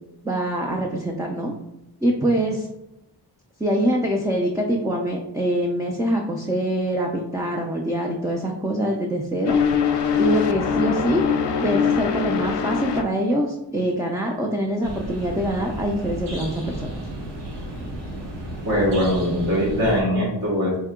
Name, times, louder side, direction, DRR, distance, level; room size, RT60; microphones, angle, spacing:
voice 1, 0.2-1.5 2.0-2.7 3.6-9.6 10.1-11.2 11.6-17.0, right 1 dB, 10° right, 0 dB, 0.3 m, -24 dB
sound 1, 9.5-13.1, left 7 dB, 75° left, 0.5 m, -22 dB
sound 2, 14.8-20.0, right 1 dB, 85° right, 1.1 m, -33 dB
voice 2, 18.6-20.8, equal, 60° right, -5 dB, 1.3 m, -21 dB
4.4 x 2.8 x 3.6 m, 0.88 s
wide cardioid pair, 115°, 42 cm